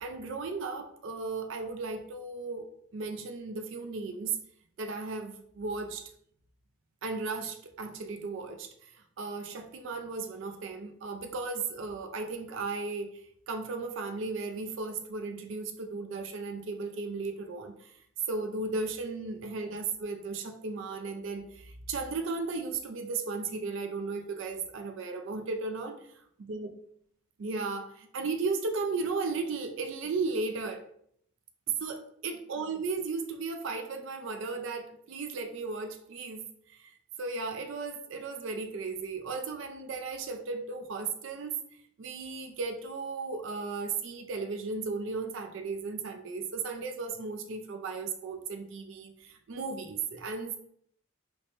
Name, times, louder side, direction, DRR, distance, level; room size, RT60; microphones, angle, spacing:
voice 1, 0.0-2.7 2.9-4.4 4.8-6.1 7.0-13.2 13.5-18.0 18.3-26.1 26.5-26.7 27.4-30.8 31.8-36.9 37.2-50.6, right 4 dB, 60° right, 4 dB, 0.4 m, -35 dB
3.2 x 2.1 x 4.1 m, 0.67 s
head